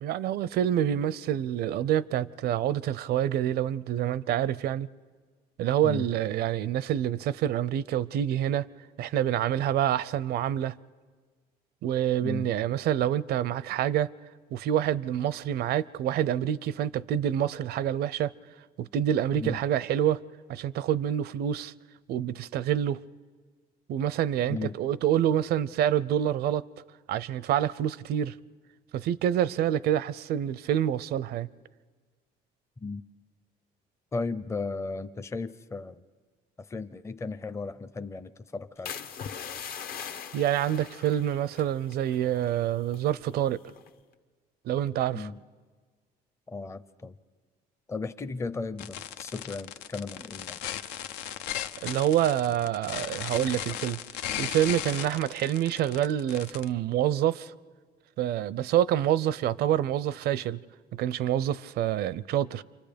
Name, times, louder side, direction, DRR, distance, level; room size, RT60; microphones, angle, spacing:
voice 1, 0.0-4.9 5.6-8.7 9.0-10.7 11.8-14.1 14.5-18.3 18.8-20.2 20.5-21.7 22.1-23.0 23.9-26.6 27.1-28.4 28.9-31.5 40.3-43.6 44.6-45.3 51.8-54.0 54.4-57.5 58.2-60.6 61.0-62.6, right 11 dB, 70° right, 0.6 m, -27 dB
voice 2, 34.1-36.0 36.6-39.0 45.1-45.4 46.5-47.2 47.9-50.7, left 3 dB, 15° left, 0.6 m, -35 dB
sound 1, 38.9-42.6 42.9-43.2 43.7-44.0, left 7 dB, 65° left, 1.0 m, -41 dB
sound 2, 48.8-56.7, left 11 dB, 90° left, 0.6 m, -36 dB
28.0 x 25.0 x 5.2 m
cardioid pair, 110°, 17 cm